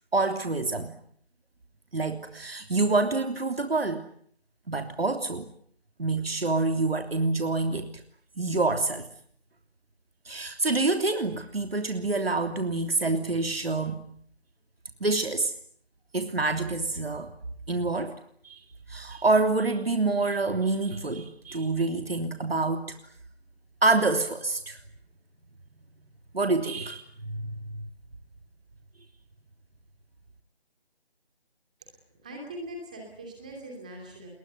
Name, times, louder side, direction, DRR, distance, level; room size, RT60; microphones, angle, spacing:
voice 1, 0.1-0.9 1.9-4.0 4.7-5.5 6.0-7.9 8.4-9.1 10.2-14.1 15.0-15.5 16.1-17.3 17.7-18.1 18.4-18.6 18.9-22.9 23.8-24.8 26.3-27.8, right 3 dB, 70° right, 6 dB, 3.2 m, -27 dB
voice 2, 31.8-34.3, right 1 dB, 10° right, 1 dB, 2.8 m, -42 dB
29.5 x 21.5 x 9.2 m, 0.63 s
figure-of-eight pair, 180°, 31 cm